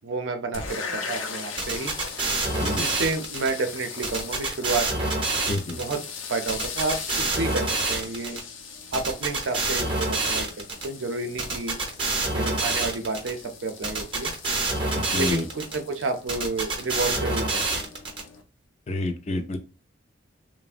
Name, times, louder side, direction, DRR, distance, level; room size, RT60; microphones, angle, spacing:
voice 1, 0.0-1.9 2.7-5.1 5.7-6.0 6.3-8.4 8.9-11.8 12.3-14.3 15.2-17.8, right 3 dB, 80° right, 6 dB, 0.6 m, -30 dB
sound 1, 0.5-18.4, left 5 dB, 90° left, 0.6 m, -40 dB
sound 2, 1.6-3.5 4.0-6.0 6.5-8.4 8.9-10.9 11.4-13.3 13.8-15.8 16.3-18.2, right 3 dB, 25° right, 0.7 m, -27 dB
voice 2, 5.5-5.8 14.9-15.5 18.9-19.6, left 2 dB, 35° left, 6 dB, 0.4 m, -28 dB
3.3 x 2.1 x 2.4 m, 0.33 s
head